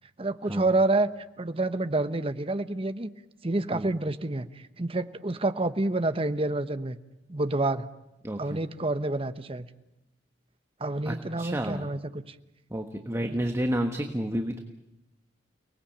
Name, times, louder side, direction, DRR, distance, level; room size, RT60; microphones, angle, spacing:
voice 1, 0.2-1.1 1.4-3.1 3.4-7.0 7.3-7.9 8.4-9.7 10.8-12.3 13.3-13.5, right 2 dB, 30° right, 11 dB, 1.0 m, -28 dB
voice 2, 8.2-8.6 11.0-11.9 12.7-14.6, equal, 15° right, 5 dB, 1.4 m, -30 dB
29.5 x 19.5 x 8.7 m, 0.91 s
head